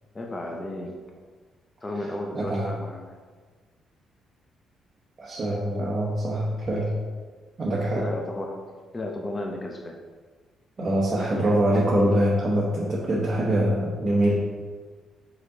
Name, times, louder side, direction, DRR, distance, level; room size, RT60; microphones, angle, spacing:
voice 1, 0.1-1.0 1.8-3.1 8.0-8.7 8.9-10.0 11.1-11.6, left 1 dB, 25° left, 2 dB, 0.7 m, -34 dB
voice 2, 2.3-2.7 5.2-7.0 7.6-8.0 10.8-14.3, right 1 dB, 35° right, -6 dB, 1.2 m, -24 dB
5.1 x 4.2 x 4.9 m, 1.5 s
cardioid pair, 90°, 0 cm